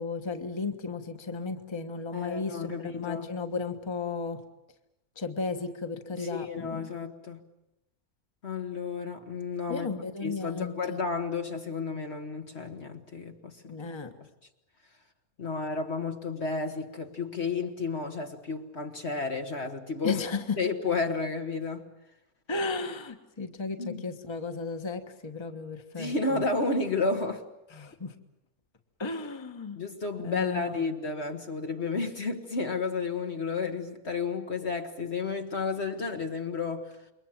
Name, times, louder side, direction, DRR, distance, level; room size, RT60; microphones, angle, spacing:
voice 1, 0.0-4.4 5.2-6.9 9.7-11.0 13.6-14.1 20.0-20.6 22.5-26.4 27.7-28.1 29.0-29.8 30.2-30.8, left 4 dB, 20° left, 1.4 m, -34 dB
voice 2, 2.1-3.3 6.2-7.4 8.4-9.9 10.2-13.8 15.4-20.2 20.6-21.9 23.8-24.0 26.0-27.4 29.8-36.9, left 4 dB, 45° left, 1.7 m, -32 dB
28.0 x 23.0 x 7.5 m
omnidirectional pair, 1.6 m